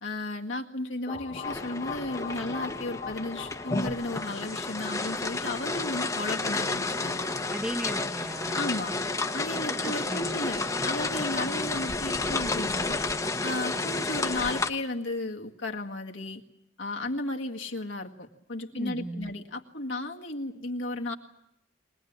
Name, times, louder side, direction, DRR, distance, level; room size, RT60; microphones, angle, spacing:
voice 1, 0.0-7.3 8.5-9.0 9.3-13.0 13.4-16.4 16.8-21.1, left 2 dB, 70° left, 2 dB, 1.9 m, -34 dB
sound 1, 1.1-5.8, left 5 dB, 35° left, 1.6 m, -41 dB
sound 2, 1.4-14.7, left 3 dB, 15° left, 1.0 m, -31 dB
voice 2, 7.5-8.7 9.5-10.4 18.7-19.3, equal, 5° right, 4 dB, 1.2 m, -37 dB
23.5 x 19.5 x 8.8 m, 0.83 s
head